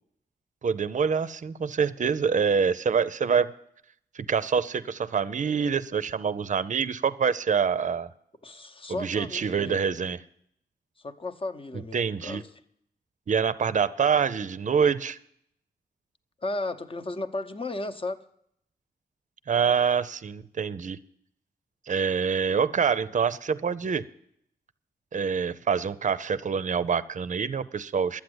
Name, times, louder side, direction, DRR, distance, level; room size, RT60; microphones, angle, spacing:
voice 1, 0.6-3.5 4.1-8.1 8.9-10.2 11.9-12.4 13.3-15.2 19.5-21.0 21.9-24.0 25.1-28.2, right 6 dB, 50° right, 16 dB, 0.5 m, -26 dB
voice 2, 8.4-9.8 11.0-12.4 16.4-18.2, left 2 dB, 30° left, 10 dB, 0.8 m, -34 dB
12.0 x 8.5 x 7.9 m, 0.72 s
wide cardioid pair, 85°, 17 cm